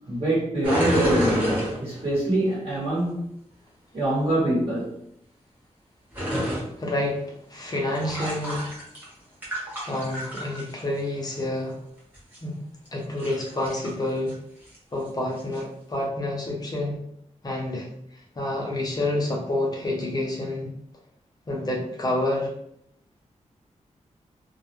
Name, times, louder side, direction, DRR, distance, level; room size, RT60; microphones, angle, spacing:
voice 1, 0.1-3.3 3.9-4.9, right 1 dB, 45° right, -9 dB, 1.0 m, -25 dB
sound 1, 0.6-2.2 6.1-6.6 7.7-9.1 9.4-10.8 12.1-12.4 13.0-13.9 14.3-14.4 14.7-14.8 15.4-15.6, equal, 15° right, 0.9 m, -28 dB
voice 2, 6.3-8.7 9.8-11.8 12.4-12.6 12.9-14.4 14.9-17.0 17.4-20.7 21.5-22.5, left 1 dB, 30° left, -1 dB, 0.6 m, -28 dB
2.2 x 2.1 x 2.9 m, 0.71 s
wide cardioid pair, 155°, 13 cm